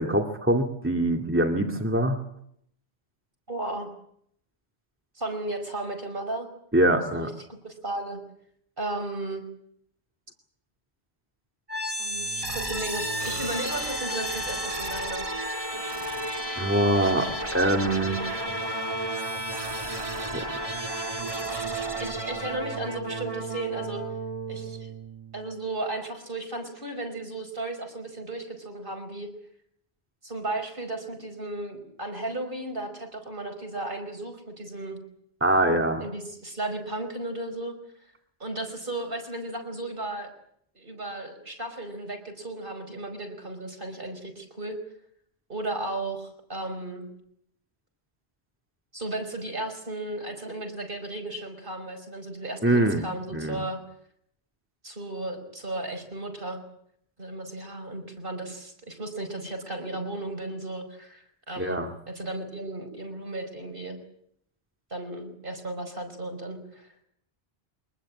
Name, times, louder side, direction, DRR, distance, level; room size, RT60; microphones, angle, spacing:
voice 1, 0.0-2.2 6.7-7.3 16.6-18.2 19.9-20.5 21.2-21.3 35.4-36.0 52.6-53.0 53.3-53.6 61.6-61.9, right 1 dB, 10° right, 3 dB, 2.3 m, -24 dB
voice 2, 3.5-3.9 5.2-6.5 7.1-8.2 8.8-9.5 12.0-15.3 18.3-18.4 22.0-24.0 24.5-24.9 25.3-29.3 30.2-35.0 36.0-37.8 38.4-40.3 40.8-44.8 45.5-47.1 48.9-53.8 54.8-56.6 57.2-64.0 64.9-66.9, right 2 dB, 55° right, 5 dB, 5.4 m, -35 dB
sound 1, 11.7-25.6, right 1 dB, 35° right, 2.2 m, -32 dB
24.5 x 20.5 x 8.6 m, 0.70 s
omnidirectional pair, 1.0 m